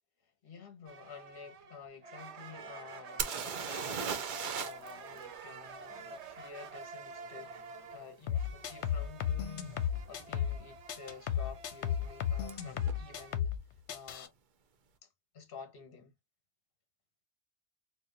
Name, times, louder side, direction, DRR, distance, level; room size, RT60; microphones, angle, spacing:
voice 1, 0.2-7.5 7.9-13.5 13.9-14.3 15.0-15.1 15.3-16.1, left 6 dB, 55° left, 1.2 m, -51 dB
sound 1, 0.8-13.3, right 4 dB, 90° right, 0.9 m, -49 dB
sound 2, 3.2-4.9 5.2-5.3 8.7-8.8 9.4-9.6 9.9-10.5 12.5-12.6 12.9-13.0, right 6 dB, 55° right, 0.7 m, -36 dB
sound 3, 8.3-10.6 10.9-13.6 13.9-14.3, left 9 dB, 85° left, 0.9 m, -34 dB
4.3 x 2.1 x 2.5 m
omnidirectional pair, 1.1 m